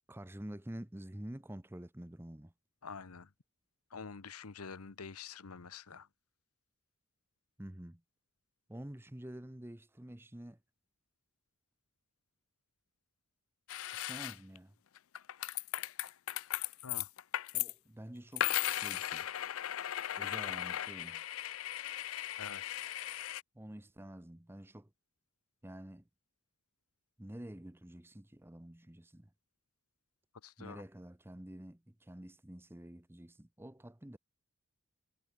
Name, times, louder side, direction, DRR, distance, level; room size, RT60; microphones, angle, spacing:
voice 1, 0.1-2.5 7.6-8.0 8.7-10.6 13.9-14.7 17.5-19.3 20.2-21.2 23.5-24.9 25.6-26.0 27.2-29.3 30.6-34.2, right 1 dB, 10° right, 0.7 m, -48 dB
voice 2, 2.8-3.3 3.9-6.1 16.8-17.1 22.4-22.8 30.4-30.8, left 5 dB, 90° left, 1.0 m, -47 dB
sound 1, 13.7-14.6 15.0-17.7 18.4-23.4, left 13 dB, 70° left, 0.5 m, -37 dB
head